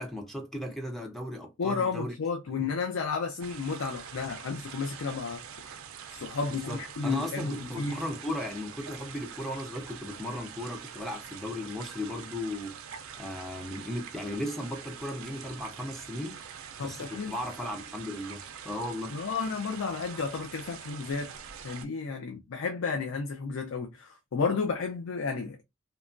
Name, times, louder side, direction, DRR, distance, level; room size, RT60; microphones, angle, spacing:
voice 1, 0.0-2.1 2.5-2.6 6.7-12.8 13.2-16.4 16.8-19.2, left 1 dB, ahead, 0.3 m, -36 dB
voice 2, 1.6-5.4 6.1-8.0 16.8-17.3 19.1-21.3 21.6-25.6, left 5 dB, 80° left, 0.4 m, -32 dB
sound 1, 3.4-21.9, right 7 dB, 80° right, 0.4 m, -45 dB
2.9 x 2.2 x 2.4 m
head